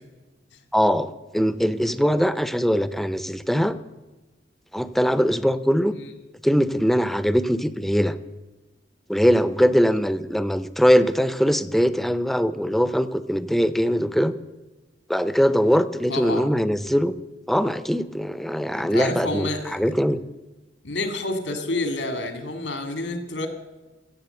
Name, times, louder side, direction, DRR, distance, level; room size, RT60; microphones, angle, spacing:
voice 1, 0.7-3.8 4.7-6.0 6.4-8.1 9.1-14.3 15.1-17.2 17.5-20.2, equal, ahead, 13 dB, 0.5 m, -21 dB
voice 2, 16.1-16.5 18.6-19.8 20.8-23.5, left 2 dB, 85° left, 7 dB, 2.2 m, -29 dB
15.5 x 7.7 x 7.9 m, 1.2 s
head